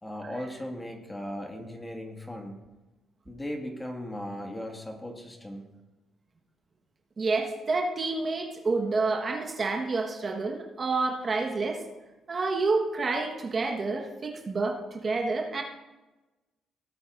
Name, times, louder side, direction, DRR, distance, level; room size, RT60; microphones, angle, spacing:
voice 1, 0.0-2.6 3.3-5.6, left 1 dB, 15° left, 2 dB, 1.9 m, -37 dB
voice 2, 7.2-11.8 12.3-15.6, right 3 dB, 40° right, 2 dB, 1.3 m, -28 dB
17.0 x 8.5 x 2.6 m, 1.1 s
cardioid pair, 90°, 0 cm